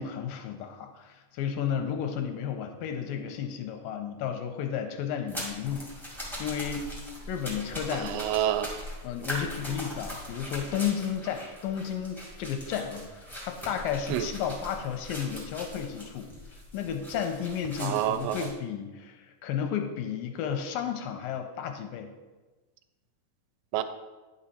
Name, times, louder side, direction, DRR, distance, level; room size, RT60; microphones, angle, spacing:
voice 1, 0.0-6.9 7.3-8.2 9.0-16.3 16.7-22.1, left 8 dB, 85° left, 5 dB, 2.3 m, -33 dB
sound 1, 5.3-18.5, equal, ahead, 0.8 m, -41 dB
voice 2, 8.0-8.7 14.1-14.3 17.8-18.5 23.7-23.8, right 12 dB, 80° right, 11 dB, 2.2 m, -28 dB
10.5 x 5.2 x 4.2 m, 1.2 s
omnidirectional pair, 4.1 m